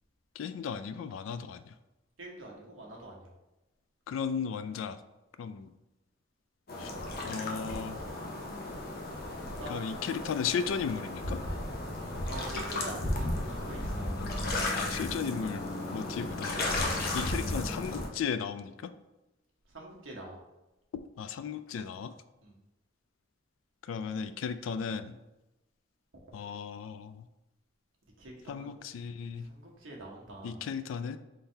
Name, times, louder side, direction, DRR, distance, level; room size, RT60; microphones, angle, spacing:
voice 1, 0.4-1.7 4.1-5.0 5.4-5.7 6.8-6.9 7.2-8.0 9.7-11.4 14.2-14.3 14.8-15.6 15.9-16.6 17.1-18.9 21.2-22.1 23.9-25.2 26.3-27.2 28.5-29.5 30.4-31.2, left 6 dB, 90° left, 11 dB, 0.3 m, -35 dB
voice 2, 2.2-3.3 9.4-9.7 12.2-14.1 19.7-20.4 22.4-22.5 28.2-28.7 29.4-30.6, right 1 dB, 85° right, -2 dB, 1.1 m, -45 dB
sound 1, 6.7-18.1, left 2 dB, 55° left, 0.7 m, -34 dB
3.8 x 2.7 x 4.4 m, 1.0 s
head